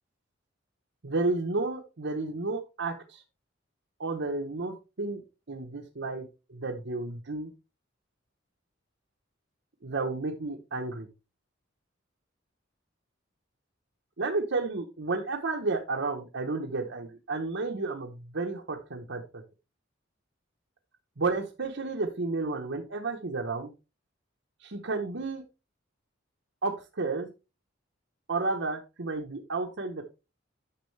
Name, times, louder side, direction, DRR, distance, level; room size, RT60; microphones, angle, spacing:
voice 1, 1.0-3.2 4.0-5.2 5.5-6.2 6.5-7.5 9.8-11.1 14.2-19.4 21.2-23.7 24.6-25.4 26.6-27.3 28.3-30.0, right 3 dB, 65° right, 0 dB, 1.0 m, -32 dB
10.0 x 6.3 x 3.2 m, 0.29 s
head